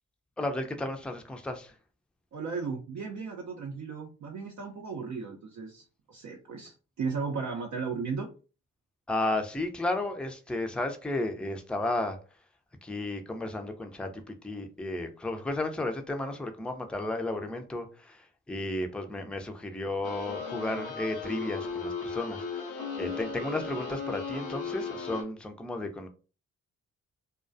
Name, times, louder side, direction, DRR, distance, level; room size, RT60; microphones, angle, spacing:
voice 1, 0.4-1.7 9.1-12.2 12.8-14.1 14.4-18.2 18.5-22.4 23.0-26.1, left 2 dB, 5° left, 0.5 m, -33 dB
voice 2, 2.3-8.3, right 5 dB, 55° right, 0.6 m, -35 dB
sound 1, 20.0-25.2, left 5 dB, 90° left, 0.7 m, -36 dB
2.2 x 2.2 x 2.5 m
hypercardioid pair, 45°, 34 cm